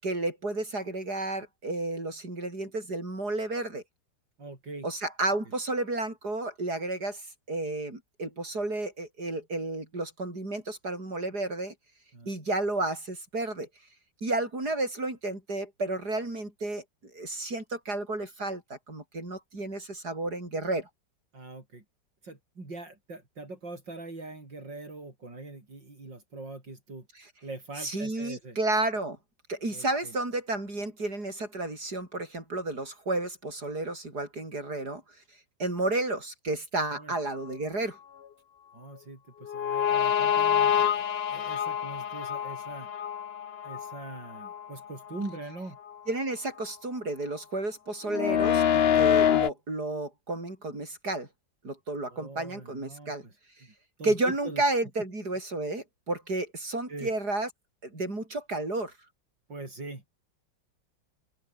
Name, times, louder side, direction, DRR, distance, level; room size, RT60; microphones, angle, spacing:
voice 1, 0.0-3.8 4.8-11.7 12.3-13.7 14.2-16.8 17.1-20.9 27.8-29.2 29.5-35.0 35.6-38.0 46.1-51.3 51.6-53.2 54.0-57.5 57.8-58.9, right 2 dB, 55° right, 8.5 m, -32 dB
voice 2, 4.4-4.9 5.5-5.6 12.1-12.3 21.3-21.8 22.2-27.1 27.4-28.6 29.7-30.1 36.9-37.1 38.7-42.9 43.6-45.8 52.1-53.7 54.0-54.6 56.9-57.1 59.5-60.0, right 2 dB, 75° right, 6.9 m, -42 dB
sound 1, 39.4-44.7 45.1-45.3 48.1-49.5, left 9 dB, 55° left, 0.7 m, -26 dB
open air
omnidirectional pair, 2.0 m